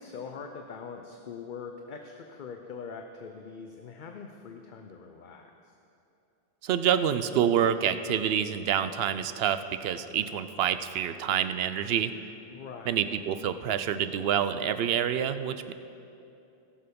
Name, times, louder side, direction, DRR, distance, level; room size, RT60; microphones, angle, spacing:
voice 1, 0.0-5.7 12.5-13.1, left 5 dB, 55° left, 4 dB, 0.8 m, -43 dB
voice 2, 6.6-12.1 12.9-15.7, right 9 dB, 75° right, 11 dB, 0.8 m, -27 dB
17.5 x 6.9 x 5.2 m, 2.7 s
omnidirectional pair, 1.0 m